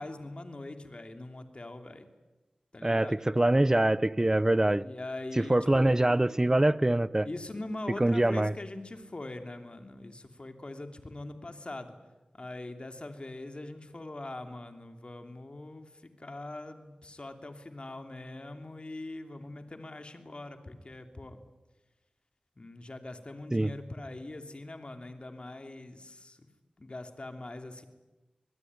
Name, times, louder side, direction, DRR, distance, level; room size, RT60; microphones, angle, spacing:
voice 1, 0.0-2.0 2.7-3.3 4.8-6.0 7.2-12.0 12.3-21.4 22.6-26.5 26.8-27.8, left 2 dB, 45° left, 2.9 m, -42 dB
voice 2, 2.8-4.8 5.4-7.3 8.0-8.5 23.5-23.7, right 1 dB, 20° right, 0.9 m, -24 dB
25.0 x 20.5 x 9.7 m
wide cardioid pair, 55°, 3 cm